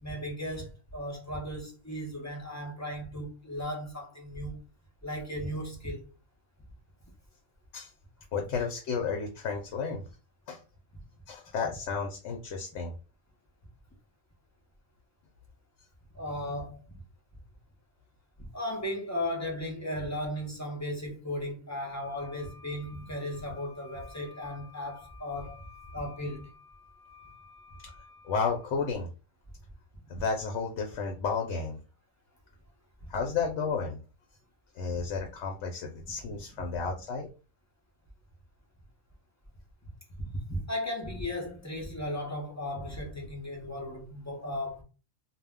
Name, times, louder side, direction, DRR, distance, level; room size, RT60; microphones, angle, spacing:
voice 1, 0.0-4.6 5.0-6.1 16.1-16.8 18.5-25.6 25.9-26.5 30.1-30.2 34.9-35.0 40.2-44.8, left 1 dB, 20° left, 0.4 m, -36 dB
voice 2, 8.3-10.0 10.5-10.6 11.3-12.9 28.2-29.1 30.1-31.8 33.1-34.0 34.8-37.3, left 5 dB, 75° left, 0.9 m, -32 dB
Wind instrument woodwind instrument, 22.0-28.7, left 6 dB, 70° right, 1.1 m, -54 dB
2.2 x 2.1 x 3.5 m
omnidirectional pair, 1.2 m